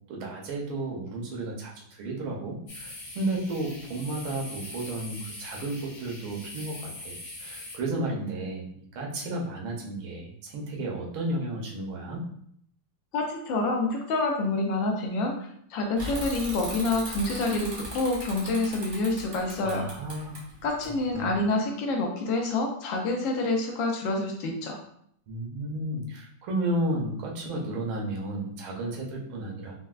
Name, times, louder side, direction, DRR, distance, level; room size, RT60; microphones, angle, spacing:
voice 1, 0.1-12.2 19.6-20.4 21.1-21.4 25.3-29.7, right 1 dB, 85° right, -1 dB, 1.6 m, -33 dB
sound 1, 2.7-7.8, left 2 dB, 50° left, 1.0 m, -42 dB
voice 2, 13.1-15.3 15.7-19.9 20.6-24.8, left 2 dB, 75° left, 2 dB, 1.3 m, -27 dB
Bicycle / Mechanisms, 16.0-21.4, right 1 dB, 40° right, 0.8 m, -39 dB
4.4 x 2.1 x 2.3 m, 0.67 s
omnidirectional pair, 2.2 m